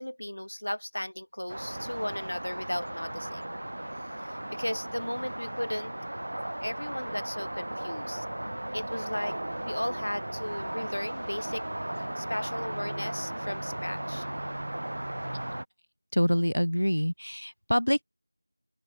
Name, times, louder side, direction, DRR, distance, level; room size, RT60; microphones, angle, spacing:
voice 1, 0.0-3.4 4.5-5.9 6.6-8.2 8.7-9.4 9.6-11.6 12.2-14.3, left 1 dB, 40° left, 3.1 m, -35 dB
sound 1, 1.5-15.6, right 1 dB, 30° right, 1.0 m, -36 dB
voice 2, 16.1-18.0, equal, 75° left, 2.2 m, -26 dB
open air
figure-of-eight pair, 175°, 0 cm